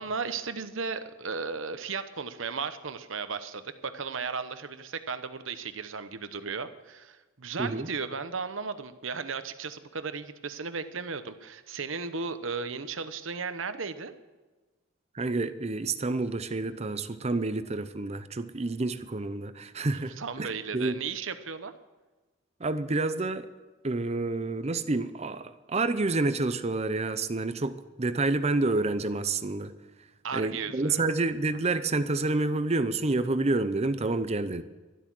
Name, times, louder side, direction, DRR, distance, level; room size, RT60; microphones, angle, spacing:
voice 1, 0.0-14.1 20.2-21.7 30.2-31.2, right 5 dB, 75° right, 1.0 m, -35 dB
voice 2, 7.6-7.9 15.1-21.0 22.6-23.5 23.8-29.7 30.3-34.6, right 2 dB, 30° right, 0.7 m, -29 dB
12.5 x 12.0 x 6.2 m
head